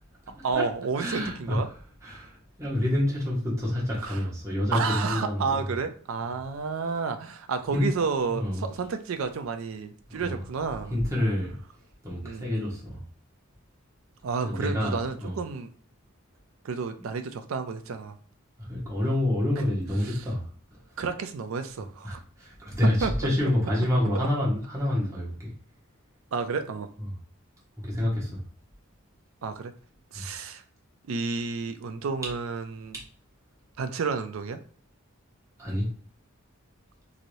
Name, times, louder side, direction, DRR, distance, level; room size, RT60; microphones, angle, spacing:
voice 1, 0.4-1.7 4.0-4.2 4.7-10.9 12.2-12.5 14.2-15.7 16.6-18.1 21.0-22.2 23.0-23.1 26.3-26.9 29.4-29.7 30.1-30.6 31.1-32.9 33.8-34.6, right 5 dB, 65° right, 9 dB, 0.4 m, -31 dB
voice 2, 1.0-5.7 7.7-7.8 8.3-8.6 10.1-10.4 10.9-11.6 12.0-13.0 14.4-15.4 17.0-17.1 18.6-20.5 22.0-25.5 27.0-27.1 27.8-28.4 30.1-30.3 35.6-35.9, left 1 dB, 15° right, -6 dB, 1.0 m, -28 dB
3.1 x 2.7 x 2.6 m, 0.43 s
head